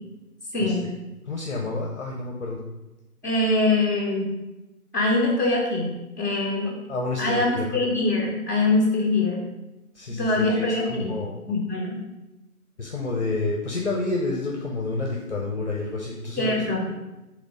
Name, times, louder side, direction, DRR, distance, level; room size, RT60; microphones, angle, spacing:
voice 1, 0.5-0.9 3.2-4.3 4.9-6.7 7.2-9.5 10.2-11.1 11.5-12.0 16.4-16.8, left 2 dB, 15° left, -6 dB, 1.0 m, -23 dB
voice 2, 1.3-2.6 6.9-7.8 9.9-11.4 12.8-16.6, left 3 dB, 50° left, -1 dB, 0.8 m, -29 dB
5.1 x 3.6 x 5.2 m, 1.0 s
figure-of-eight pair, 170°, 45 cm